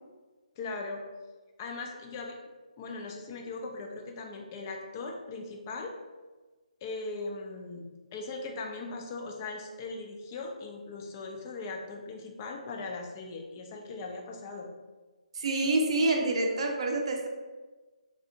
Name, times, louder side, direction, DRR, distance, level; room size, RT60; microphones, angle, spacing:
voice 1, 0.6-1.0 1.6-2.4 2.8-5.9 6.8-14.7, left 3 dB, 25° left, 2 dB, 0.4 m, -39 dB
voice 2, 15.3-17.3, right 2 dB, 50° right, 1 dB, 0.5 m, -27 dB
3.4 x 2.4 x 2.7 m, 1.3 s
hypercardioid pair, 160°, 4 cm